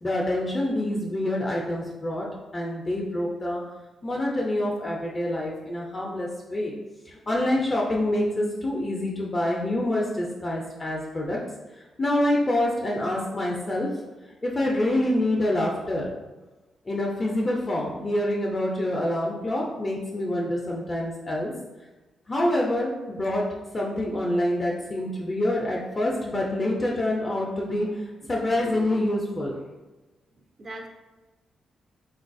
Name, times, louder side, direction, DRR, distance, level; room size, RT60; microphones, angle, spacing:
voice 1, 0.0-2.3 2.5-3.6 4.0-6.7 7.1-11.4 12.0-14.1 14.4-16.1 16.9-21.5 22.3-29.6, left 1 dB, 25° left, -3 dB, 0.4 m, -26 dB
voice 2, 30.4-30.9, right 1 dB, 35° right, 3 dB, 0.4 m, -42 dB
3.8 x 2.3 x 2.5 m, 1.1 s
cardioid pair, 125°, 0 cm